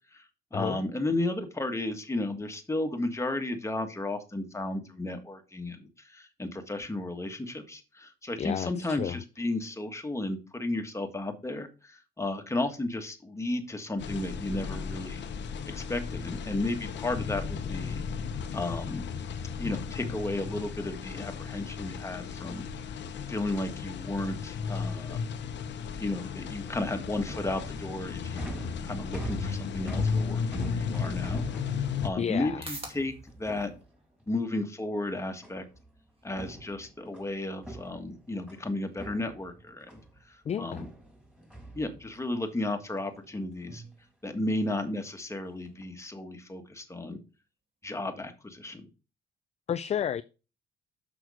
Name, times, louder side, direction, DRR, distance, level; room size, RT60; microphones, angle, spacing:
voice 1, 0.5-15.2 15.7-18.0 18.5-19.1 19.6-22.7 23.3-25.2 26.0-31.4 31.7-33.7 34.3-35.6 36.2-40.0 40.3-40.9 41.7-43.8 44.2-47.2 47.8-48.9, left 2 dB, 15° left, 1.5 m, -33 dB
voice 2, 8.4-9.2 32.2-32.6 40.5-40.8 49.7-50.2, left 8 dB, 35° left, 0.3 m, -31 dB
sound 1, 14.0-32.1, left 6 dB, 65° left, 0.9 m, -35 dB
sound 2, 27.3-34.3 35.4-35.9 36.2-38.6 39.0-40.2 40.7-42.4 42.8-43.3 43.5-43.9 44.7-45.0 45.5-45.8, right 1 dB, 5° right, 4.3 m, -43 dB
sound 3, 32.0-48.1, right 2 dB, 30° right, 2.4 m, -55 dB
6.3 x 6.0 x 4.9 m
cardioid pair, 90°, 20 cm